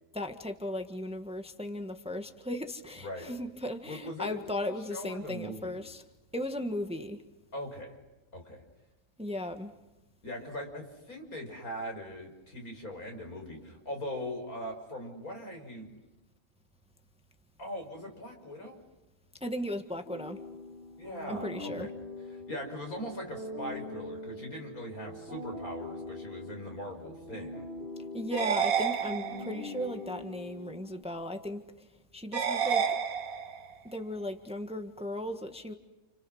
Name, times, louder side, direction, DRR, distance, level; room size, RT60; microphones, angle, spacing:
voice 1, 0.1-6.0 6.3-7.2 9.2-9.7 19.4-20.4 21.3-21.9 28.1-33.0 33.8-35.7, left 1 dB, 5° right, 6 dB, 1.5 m, -36 dB
voice 2, 3.9-4.4 4.7-5.8 7.5-7.9 8.3-8.6 10.2-15.9 17.6-18.8 21.0-21.9 22.3-27.7, equal, 80° left, 2 dB, 6.3 m, -40 dB
sound 1, 20.0-31.0, left 2 dB, 55° left, 7.2 m, -43 dB
sound 2, 28.3-29.7 32.3-33.7, right 7 dB, 75° right, 1.6 m, -30 dB
30.0 x 29.5 x 6.4 m, 1.0 s
omnidirectional pair, 1.5 m